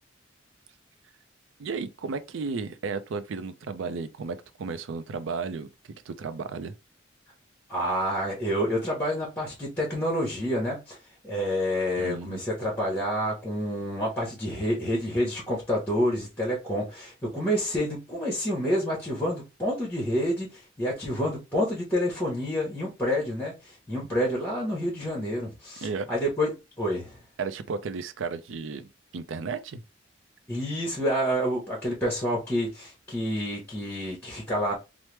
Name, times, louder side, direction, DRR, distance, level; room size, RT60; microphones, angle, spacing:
voice 1, 1.6-5.7 6.1-6.8 12.0-12.4 25.8-26.1 27.4-28.9 29.1-29.8, right 4 dB, 80° right, 0.4 m, -33 dB
voice 2, 7.7-11.0 11.2-26.5 26.8-27.2 30.5-34.7, equal, 10° left, 0.9 m, -28 dB
3.1 x 2.0 x 3.1 m
head